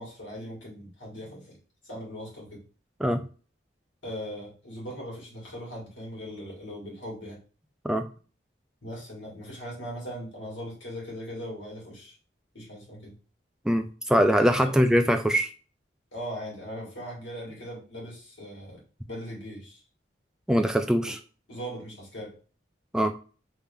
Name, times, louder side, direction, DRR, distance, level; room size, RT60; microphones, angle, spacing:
voice 1, 0.0-1.6 1.8-2.6 4.0-7.4 8.8-12.2 12.5-13.1 14.6-14.7 16.1-19.8 21.0-21.1 21.5-22.4, equal, 80° left, -3 dB, 1.9 m, -39 dB
voice 2, 13.6-15.5 20.5-21.2 22.9-23.1, equal, 5° right, 6 dB, 0.3 m, -22 dB
3.5 x 2.8 x 3.4 m, 0.37 s
head